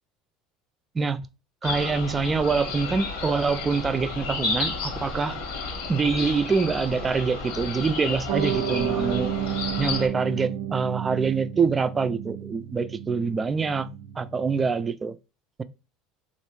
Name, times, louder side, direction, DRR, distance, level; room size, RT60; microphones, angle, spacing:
sound 1, 1.6-10.1, left 3 dB, 85° left, 1.3 m, -32 dB
voice 1, 1.6-5.4 5.9-9.3 9.8-13.9 14.2-15.2, right 5 dB, 25° right, 0.3 m, -25 dB
Piano, 8.3-14.8, right 9 dB, 85° right, 0.5 m, -31 dB
3.4 x 2.5 x 3.1 m
supercardioid pair, 105°, 0 cm